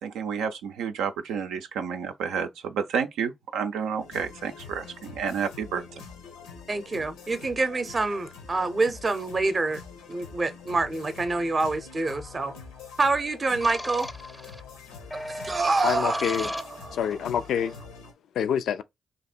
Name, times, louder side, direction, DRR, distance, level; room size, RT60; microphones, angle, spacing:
voice 1, 0.0-5.8, right 6 dB, 80° right, 0.4 m, -30 dB
sound 1, 4.0-18.1, left 5 dB, 90° left, 0.8 m, -45 dB
voice 2, 6.7-9.8 10.1-12.5 13.0-14.1 15.1-17.0, right 3 dB, 40° right, 0.6 m, -27 dB
sound 2, 12.1-12.6 13.6-14.6 15.1-17.2, left 1 dB, 10° left, 0.5 m, -37 dB
voice 3, 15.8-16.5 16.9-17.7 18.4-18.8, left 8 dB, 70° left, 0.3 m, -26 dB
2.8 x 2.7 x 4.1 m
hypercardioid pair, 40°, 0 cm